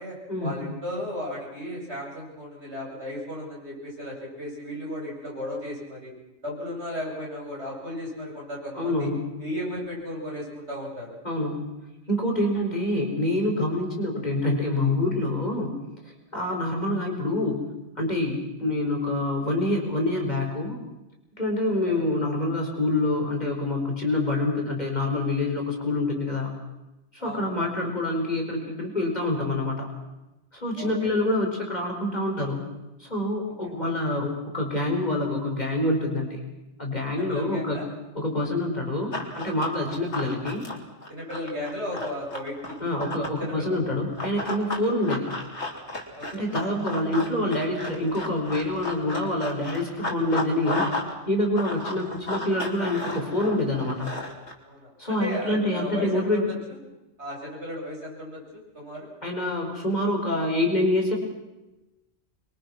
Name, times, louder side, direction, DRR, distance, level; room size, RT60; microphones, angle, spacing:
voice 1, 0.4-6.1 6.4-9.1 9.4-11.1 21.7-22.0 27.2-27.7 30.8-31.1 33.6-33.7 37.1-37.9 40.0-40.1 41.1-42.7 43.4-43.8 46.1-46.4 54.6-56.8 57.2-59.1, left 1 dB, 65° right, -2 dB, 8.5 m, -35 dB
voice 2, 8.7-9.3 11.2-11.7 12.1-15.7 16.0-17.6 18.0-20.8 21.4-26.5 27.1-29.9 30.5-32.6 33.0-36.4 36.8-37.8 38.2-40.7 42.8-45.3 46.3-50.9 51.3-54.2 55.0-56.5 59.2-61.2, left 1 dB, 35° left, 1 dB, 5.3 m, -26 dB
Run, 39.1-43.4 44.2-51.1 51.4-54.5, left 2 dB, 65° left, 3.7 m, -33 dB
26.5 x 23.5 x 6.1 m, 0.99 s
omnidirectional pair, 1.2 m